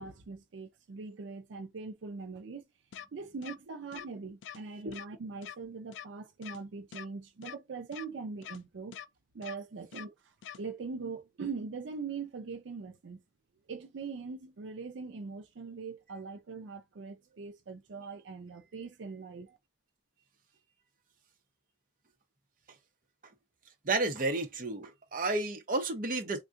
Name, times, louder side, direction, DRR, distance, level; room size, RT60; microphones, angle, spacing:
voice 1, 0.0-2.6 3.1-9.0 9.3-13.2 13.7-19.6, right 4 dB, 85° right, 0.5 m, -42 dB
sound 1, 2.9-3.1 3.4-3.6 3.9-4.1 4.4-4.6 4.9-5.1 5.4-5.6 5.9-6.1 6.4-6.6 6.9-7.1 7.4-7.6 7.9-8.1 8.4-8.6 8.9-9.1 9.4-9.6 9.9-10.1 10.4-10.6, left 9 dB, 90° left, 0.4 m, -44 dB
voice 2, 23.8-26.4, right 2 dB, 50° right, 0.8 m, -31 dB
3.6 x 2.2 x 2.5 m
head